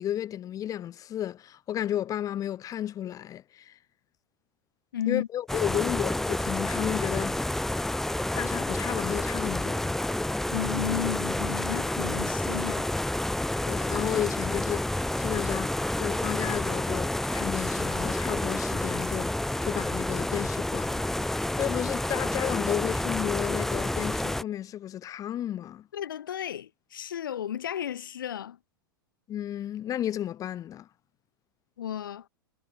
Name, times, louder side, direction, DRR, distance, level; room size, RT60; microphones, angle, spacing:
voice 1, 0.0-3.8 5.1-7.4 8.4-10.0 13.6-19.3 19.6-25.9 29.3-30.9, left 11 dB, 30° left, 1.8 m, -33 dB
voice 2, 4.9-5.3 10.5-12.9 25.9-28.6 31.8-32.3, left 10 dB, 65° left, 5.6 m, -33 dB
sound 1, 5.5-24.4, left 1 dB, 5° left, 0.4 m, -29 dB
figure-of-eight pair, 90°, 12 cm